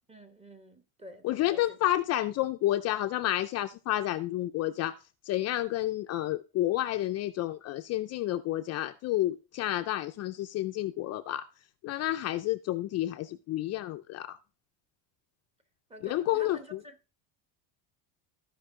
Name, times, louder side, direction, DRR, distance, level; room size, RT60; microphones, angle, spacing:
voice 1, 0.1-1.8 15.9-17.2, equal, 15° right, 1.0 m, -49 dB
voice 2, 1.2-4.9 5.3-11.5 11.8-14.4 16.0-16.6, left 14 dB, 40° left, 0.4 m, -30 dB
14.0 x 5.3 x 3.7 m
cardioid pair, 155°, 43 cm